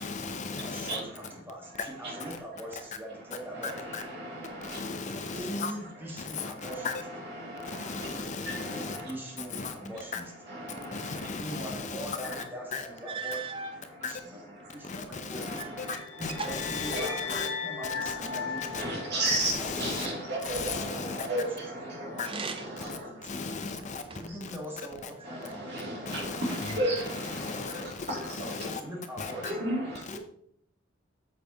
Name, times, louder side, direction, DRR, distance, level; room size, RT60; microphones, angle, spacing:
voice 1, 0.0-0.9 3.9-4.0 4.8-5.7 6.4-6.5 6.8-6.9 7.9-9.0 9.6-9.7 10.9-12.2 12.7-12.8 14.0-14.1 15.5-15.6 16.2-17.0 17.3-17.5 20.0-20.1 20.5-21.2 22.2-22.3 23.3-24.0 26.2-26.4 27.5-27.7 28.6-28.8 29.2-29.3, left 4 dB, 35° left, 0.6 m, -35 dB
voice 2, 0.6-3.7 5.3-7.0 8.6-10.3 11.3-13.4 14.0-15.7 16.4-18.8 19.8-19.9 20.8-21.3 21.7-22.0 22.6-23.7 24.1-26.2 27.7-27.8 28.8-29.4 30.1-30.2, right 1 dB, 10° right, 1.6 m, -42 dB
voice 3, 3.5-4.8 6.6-9.1 10.5-11.3 12.2-12.5 15.3-16.5 16.9-17.4 17.8-23.1 25.2-28.6 29.2-30.0, right 1 dB, 55° right, 2.9 m, -35 dB
sound 1, 13.0-13.8 14.6-15.8 16.1-17.6 22.2-22.9 23.5-24.5 25.2-26.0 26.7-27.4, right 4 dB, 25° right, 0.5 m, -41 dB
sound 2, 15.7-20.0, left 6 dB, 85° left, 3.3 m, -38 dB
8.4 x 7.2 x 2.9 m
head